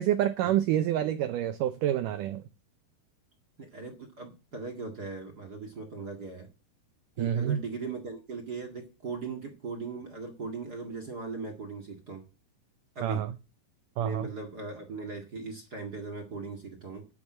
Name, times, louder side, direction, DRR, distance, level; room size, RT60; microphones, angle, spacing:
voice 1, 0.0-2.4 7.2-7.6 13.0-13.3 14.0-14.3, right 11 dB, 80° right, 2.0 m, -27 dB
voice 2, 3.6-6.5 7.2-12.2 12.9-13.3 14.0-17.1, right 4 dB, 35° right, 1.7 m, -39 dB
10.5 x 6.9 x 8.6 m
omnidirectional pair, 4.6 m